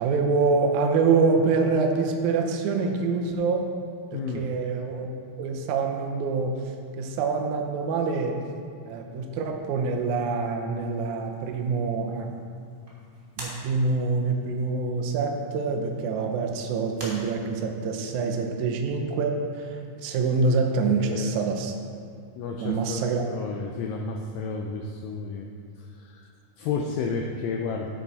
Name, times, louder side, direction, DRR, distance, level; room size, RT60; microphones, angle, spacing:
voice 1, 0.0-3.7 4.1-5.1 5.4-6.5 7.0-8.3 8.8-12.3 13.4-19.8 20.0-21.7 22.6-23.2, right 4 dB, 90° right, 3 dB, 1.6 m, -25 dB
voice 2, 4.1-4.4 20.9-21.4 22.3-25.5 25.8-26.2 26.6-27.9, left 5 dB, 85° left, 1 dB, 1.9 m, -32 dB
sound 1, 10.7-17.9, equal, 70° right, 0.5 m, -47 dB
9.5 x 7.2 x 4.1 m, 2.3 s
omnidirectional pair, 4.5 m